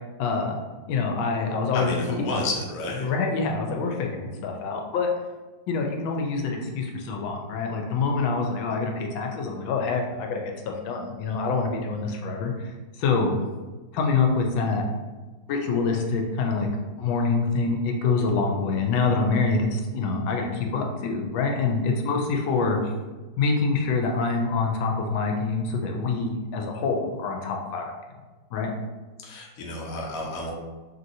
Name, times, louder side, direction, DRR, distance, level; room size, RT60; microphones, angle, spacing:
voice 1, 0.2-0.6 0.9-2.4 3.0-5.1 5.7-12.7 13.0-13.3 13.9-14.8 15.5-16.7 17.0-22.8 23.4-27.9 28.5-28.7, left 4 dB, 85° left, 2 dB, 1.3 m, -26 dB
voice 2, 1.7-3.1 29.2-30.5, left 2 dB, 65° left, -1 dB, 0.8 m, -30 dB
3.1 x 2.7 x 2.6 m, 1.3 s
omnidirectional pair, 2.1 m